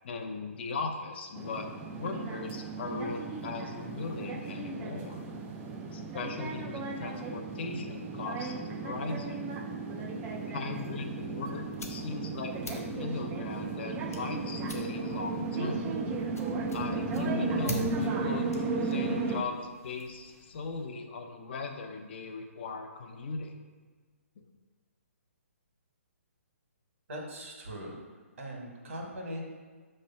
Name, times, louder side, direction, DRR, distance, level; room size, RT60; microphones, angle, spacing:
voice 1, 0.0-5.2 5.9-8.5 8.8-9.5 10.5-15.9 16.7-23.5 24.4-24.5, left 3 dB, 45° left, 4 dB, 0.6 m, -38 dB
sound 1, 1.4-19.4, right 3 dB, 15° right, 0.4 m, -35 dB
sound 2, 11.1-20.9, left 3 dB, 85° left, 1.0 m, -49 dB
voice 2, 27.1-28.0 28.4-29.4, right 1 dB, 65° right, -1 dB, 1.6 m, -40 dB
5.2 x 3.2 x 5.5 m, 1.4 s
hypercardioid pair, 150°, 8 cm